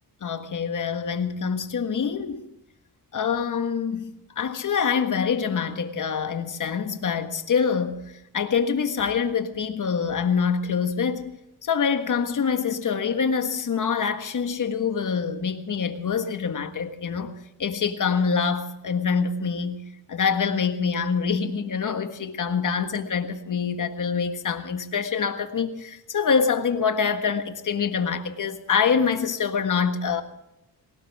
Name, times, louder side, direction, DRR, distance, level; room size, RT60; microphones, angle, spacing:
voice 1, 0.2-2.4 3.1-8.0 8.3-11.3 11.6-17.3 17.6-19.8 20.1-30.2, left 6 dB, 45° left, 1.6 m, -25 dB
19.0 x 18.0 x 3.6 m
cardioid pair, 80°, 41 cm